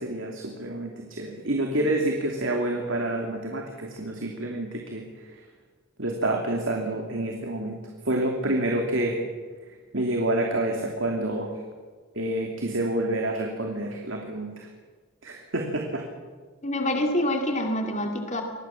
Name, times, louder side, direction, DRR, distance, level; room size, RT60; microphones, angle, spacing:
voice 1, 0.0-5.0 6.0-7.8 8.0-9.2 9.9-11.5 12.1-14.7 15.2-16.0, right 1 dB, 70° right, 2 dB, 2.8 m, -28 dB
voice 2, 16.6-18.4, left 1 dB, 35° left, 3 dB, 2.5 m, -26 dB
25.0 x 19.5 x 7.3 m, 1.5 s
head